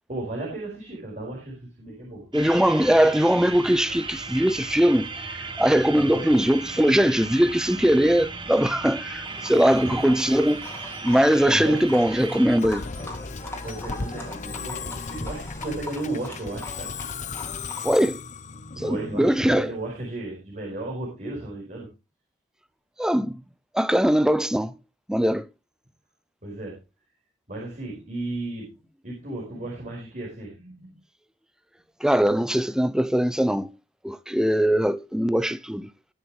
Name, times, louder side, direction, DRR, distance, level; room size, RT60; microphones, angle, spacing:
voice 1, 0.1-2.3 6.0-6.2 9.7-10.0 11.4-11.8 13.6-16.9 17.3-17.4 18.7-21.9 26.4-26.8 27.5-28.7 29.0-30.9, right 2 dB, 45° right, 4.9 m, -34 dB
voice 2, 2.3-5.1 5.6-10.6 11.0-12.9 17.8-18.2 18.8-19.7 23.0-23.4 23.7-24.8 25.1-25.5 32.0-33.7 34.0-35.9, equal, 5° right, 0.5 m, -21 dB
sound 1, 2.3-12.6, right 4 dB, 25° right, 1.2 m, -36 dB
Livestock farm animals working animals, 9.2-17.9, left 2 dB, 15° left, 3.4 m, -41 dB
Musical instrument, 12.6-19.9, left 4 dB, 40° left, 0.7 m, -36 dB
20.0 x 7.1 x 3.1 m
head